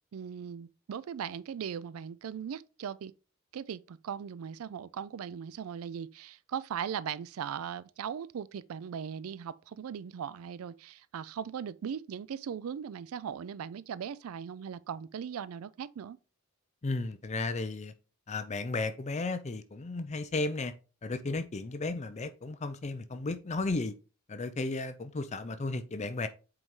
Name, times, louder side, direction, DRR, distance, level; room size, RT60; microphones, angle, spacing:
voice 1, 0.1-3.1 3.5-16.2, right 8 dB, 75° right, 0.4 m, -39 dB
voice 2, 16.8-17.9 18.3-20.7 21.0-23.9 24.3-26.3, left 3 dB, 30° left, 0.5 m, -34 dB
7.6 x 4.6 x 3.7 m
head